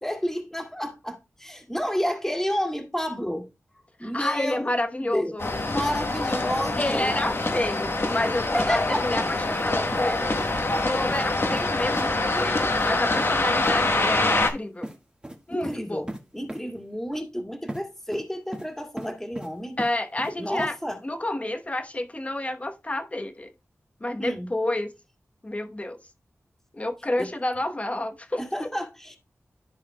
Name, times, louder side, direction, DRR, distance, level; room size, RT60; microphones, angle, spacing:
voice 1, 0.0-3.5 4.0-4.6 5.1-5.3 5.7-7.2 8.5-9.1 15.5-16.1 16.3-19.8 20.4-21.0 24.2-24.5 27.2-27.3 28.4-29.2, equal, 5° left, 2.1 m, -30 dB
voice 2, 4.0-5.5 6.8-10.4 10.8-14.9 15.5-16.0 19.8-20.7 21.0-23.5 24.0-24.9 25.4-26.0 26.7-28.4, left 1 dB, 25° left, 1.0 m, -29 dB
sound 1, 5.4-14.5, left 2 dB, 50° left, 1.1 m, -25 dB
sound 2, 9.5-9.7 9.9-10.8 11.1-11.2 11.5-11.6 11.9-12.1 12.3-12.5 12.8-12.9 13.2-13.3 13.6-13.7 14.0-14.5 14.8-15.0 15.2-15.4 15.6-15.8 16.1-16.2 16.5-16.6 17.7-17.8 18.1-18.7 19.0-19.5 19.8-20.3 20.6-20.7, right 1 dB, 20° right, 1.5 m, -37 dB
14.0 x 4.8 x 2.2 m
wide cardioid pair, 70°, 5 cm